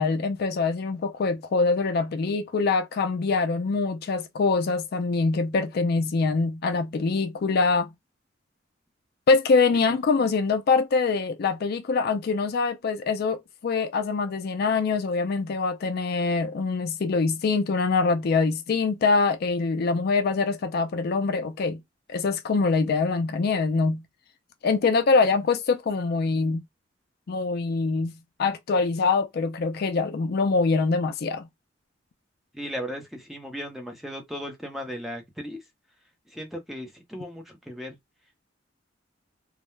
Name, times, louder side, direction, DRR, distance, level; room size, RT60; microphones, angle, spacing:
voice 1, 0.0-7.9 9.3-21.8 22.1-24.0 24.6-26.6 27.3-31.5, left 4 dB, 55° left, 0.4 m, -24 dB
voice 2, 32.5-35.6 36.3-37.9, equal, ahead, 0.6 m, -36 dB
2.3 x 2.1 x 3.0 m
head